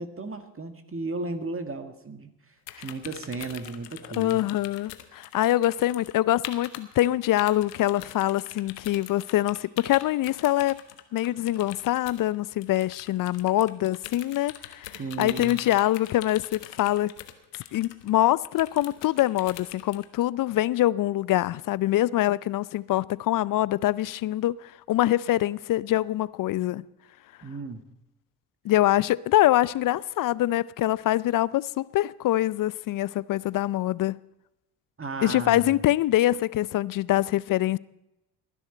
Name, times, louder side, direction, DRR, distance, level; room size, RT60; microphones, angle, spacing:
voice 1, 0.0-2.3 2.8-4.4 14.9-15.6 27.4-27.8 35.0-35.8, right 3 dB, 25° right, 1.8 m, -35 dB
sound 1, 2.7-6.1 6.4-7.1 7.4-20.1, left 13 dB, 90° left, 1.0 m, -42 dB
voice 2, 4.2-10.7 11.1-17.1 17.7-26.9 28.6-34.2 35.2-37.8, left 14 dB, 45° left, 0.5 m, -24 dB
19.5 x 10.5 x 4.4 m
hypercardioid pair, 55°, 47 cm